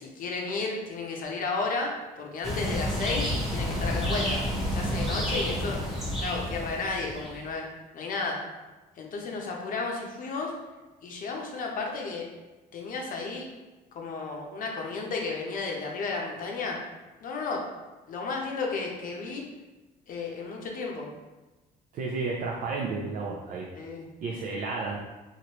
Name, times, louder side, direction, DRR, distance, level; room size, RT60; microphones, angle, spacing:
voice 1, 0.0-5.8 6.2-7.7 7.9-8.4 9.0-10.5 11.0-12.3 12.7-13.5 13.9-16.8 17.2-17.6 18.1-19.4 20.1-21.1 23.7-24.1, left 4 dB, 55° left, 0 dB, 0.7 m, -33 dB
sound 1, 2.4-7.4, equal, ahead, 0.8 m, -30 dB
voice 2, 21.9-23.7 24.2-25.0, right 3 dB, 55° right, -2 dB, 0.4 m, -32 dB
3.1 x 2.5 x 2.9 m, 1.2 s
cardioid pair, 110°, 17 cm